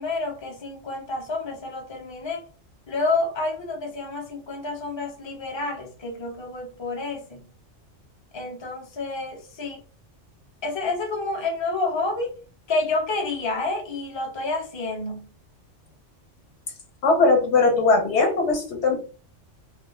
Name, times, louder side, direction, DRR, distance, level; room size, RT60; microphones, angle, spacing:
voice 1, 0.0-2.4 2.9-7.5 8.3-9.8 10.6-12.3 12.7-15.3, left 3 dB, 35° left, 0.5 m, -29 dB
voice 2, 17.0-19.0, left 3 dB, 65° left, 0.9 m, -19 dB
2.4 x 2.1 x 3.0 m
omnidirectional pair, 1.3 m